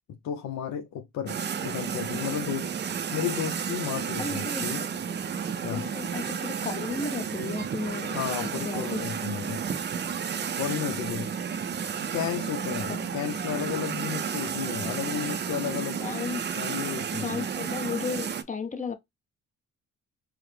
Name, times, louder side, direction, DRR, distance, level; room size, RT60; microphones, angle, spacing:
voice 1, 0.1-1.4 1.6-4.9 5.6-5.9 8.1-9.6 10.5-11.3 12.1-16.0 16.6-17.4, left 9 dB, 65° left, 0.7 m, -33 dB
sound 1, 1.3-18.4, right 7 dB, 35° right, 0.5 m, -32 dB
voice 2, 4.2-4.9 5.7-9.0 9.4-9.8 12.9-13.1 16.0-16.4 17.2-18.9, left 5 dB, 25° left, 0.7 m, -34 dB
4.7 x 2.1 x 3.3 m
cardioid pair, 90°, 30 cm